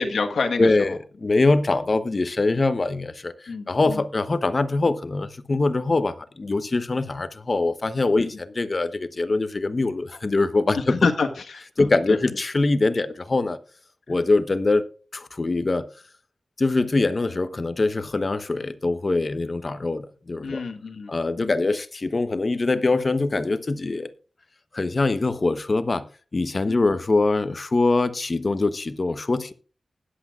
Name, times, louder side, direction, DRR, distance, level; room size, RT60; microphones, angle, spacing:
voice 1, 0.0-1.0 3.5-4.0 8.2-8.3 10.7-12.2 20.4-21.5 26.7-26.8, left 4 dB, 85° left, 1.4 m, -28 dB
voice 2, 0.6-11.0 11.8-13.6 14.1-14.8 15.1-15.9 16.6-20.6 21.1-24.1 24.7-26.1 26.3-29.5, left 3 dB, 45° left, 1.0 m, -23 dB
19.5 x 8.2 x 2.4 m
cardioid pair, 55°, 0 cm